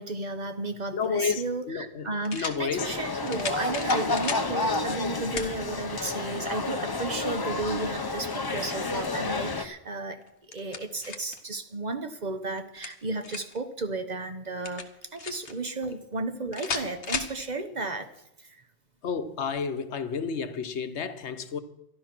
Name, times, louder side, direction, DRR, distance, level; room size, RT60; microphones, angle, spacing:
voice 1, 0.0-18.1 18.4-18.6, right 3 dB, 40° right, 1.0 m, -34 dB
voice 2, 0.9-2.9 19.0-21.6, left 6 dB, 80° left, 1.2 m, -31 dB
sound 1, 1.0-1.1 2.2-2.6 3.3-4.5 5.4-5.5 6.1-6.2 8.1-8.9 10.2-11.4 12.6-13.6 14.6-15.5 16.5-17.4, left 5 dB, 60° left, 1.3 m, -35 dB
sound 2, 2.8-9.6, left 3 dB, 25° left, 0.5 m, -30 dB
13.0 x 11.5 x 6.0 m
omnidirectional pair, 1.2 m